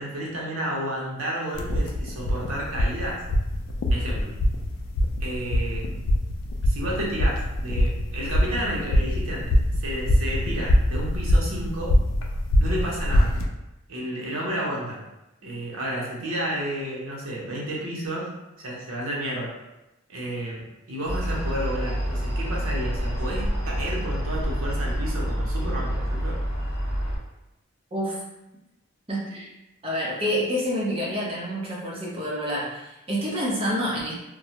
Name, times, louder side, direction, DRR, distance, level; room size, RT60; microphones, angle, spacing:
voice 1, 0.0-3.2 3.9-4.3 5.2-6.0 6.6-11.9 12.6-13.3 13.9-15.0 15.4-18.3 18.6-19.5 20.1-20.6 20.9-26.4, right 1 dB, 75° right, -4 dB, 0.7 m, -31 dB
sound 1, 1.5-13.5, equal, 70° left, 0.3 m, -23 dB
sound 2, 21.1-27.2, equal, 50° left, 0.9 m, -27 dB
voice 2, 27.9-28.3 29.1-29.5 29.8-34.1, equal, 25° right, -5 dB, 0.6 m, -28 dB
2.3 x 2.0 x 2.8 m, 0.93 s
head